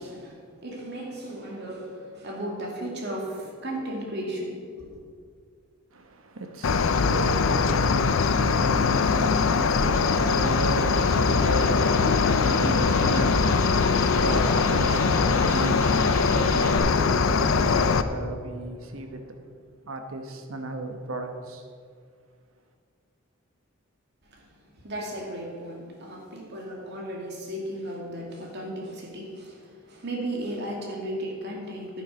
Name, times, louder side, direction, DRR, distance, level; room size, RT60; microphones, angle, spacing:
voice 1, 0.0-5.0 24.2-32.0, right 1 dB, 55° right, 2.3 m, -35 dB
voice 2, 5.9-21.7, right 1 dB, 80° right, 1.2 m, -35 dB
Cricket, 6.6-18.0, left 4 dB, 75° left, 0.5 m, -22 dB
sound 1, 9.7-16.8, left 1 dB, 10° left, 3.5 m, -38 dB
10.5 x 10.0 x 5.1 m
head